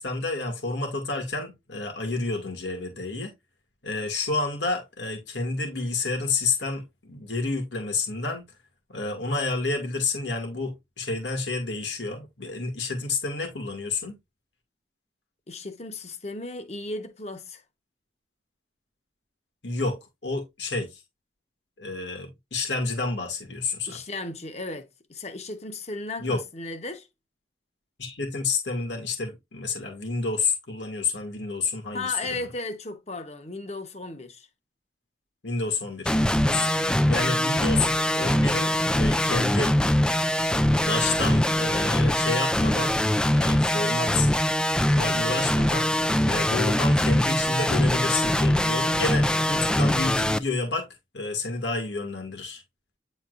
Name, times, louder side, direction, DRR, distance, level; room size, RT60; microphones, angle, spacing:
voice 1, 0.0-3.3 3.8-8.4 8.9-14.2 19.6-21.0 21.8-24.0 26.2-26.4 28.0-32.5 35.4-39.7 40.7-43.0 43.3-44.3 44.9-45.9 46.2-50.9 51.1-52.6, left 3 dB, 85° left, 2.3 m, -30 dB
voice 2, 15.5-17.6 23.9-27.1 31.9-34.5, left 2 dB, 40° left, 1.1 m, -35 dB
sound 1, 36.1-50.4, left 1 dB, 5° left, 0.3 m, -23 dB
9.4 x 4.4 x 2.6 m
head